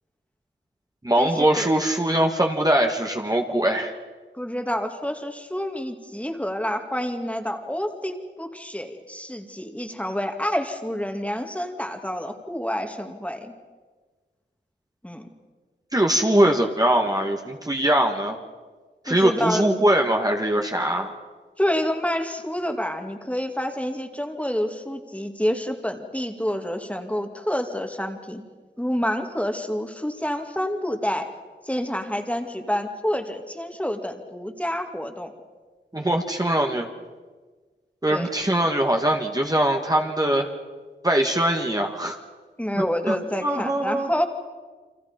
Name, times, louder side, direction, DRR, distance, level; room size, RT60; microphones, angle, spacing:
voice 1, 1.0-3.9 15.9-18.4 19.0-21.2 35.9-36.9 38.0-40.5 41.0-42.2 42.8-43.2 43.4-44.1, right 1 dB, 20° right, 2 dB, 1.9 m, -22 dB
voice 2, 4.3-13.5 15.0-15.3 19.0-19.6 21.6-28.4 28.8-31.3 31.6-35.3 38.1-38.3 42.6-44.2, equal, 5° left, 4 dB, 2.3 m, -28 dB
29.5 x 25.5 x 5.3 m, 1.4 s
wide cardioid pair, 75°, 19 cm